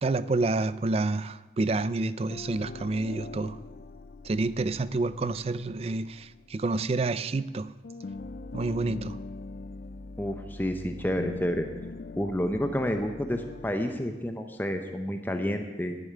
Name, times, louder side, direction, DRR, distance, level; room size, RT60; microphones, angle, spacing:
voice 1, 0.0-3.6 4.2-7.7 8.5-9.2, right 3 dB, 35° right, 16 dB, 0.4 m, -28 dB
sound 1, 2.3-7.5 7.8-14.1, left 3 dB, 55° left, 0.4 m, -43 dB
voice 2, 10.2-11.7 12.2-16.0, equal, 10° left, 6 dB, 0.7 m, -30 dB
11.0 x 7.1 x 9.4 m, 1.2 s
head